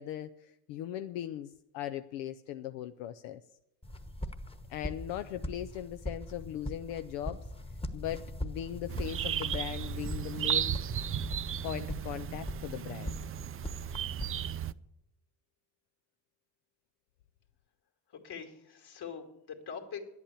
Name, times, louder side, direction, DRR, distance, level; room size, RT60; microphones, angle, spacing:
voice 1, 0.0-3.4 4.7-7.5 7.9-10.7 11.6-13.2, left 11 dB, 90° left, 9 dB, 0.7 m, -39 dB
sound 1, 3.8-14.7, equal, 10° left, 1.1 m, -41 dB
sound 2, 8.9-14.7, right 10 dB, 30° right, 0.4 m, -35 dB
voice 2, 18.1-20.0, left 7 dB, 55° left, 4 dB, 2.7 m, -43 dB
10.5 x 8.6 x 8.6 m, 0.82 s
supercardioid pair, 75°, 48 cm